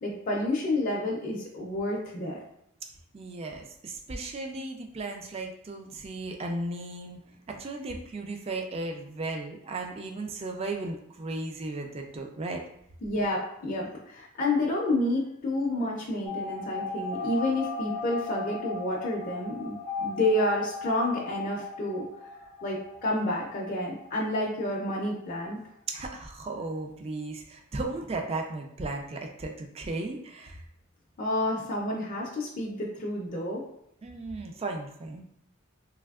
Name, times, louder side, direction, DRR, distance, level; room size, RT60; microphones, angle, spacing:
voice 1, 0.0-2.4 13.0-22.1 22.6-25.6 31.2-33.6, left 1 dB, 40° left, -3 dB, 0.4 m, -29 dB
voice 2, 3.1-12.6 25.9-30.6 34.0-35.2, right 2 dB, 30° right, 3 dB, 0.3 m, -35 dB
sound 1, 16.3-24.7 25.0-25.1 25.3-25.4, left 3 dB, 90° right, 1.0 m, -37 dB
3.3 x 2.6 x 2.3 m, 0.73 s
head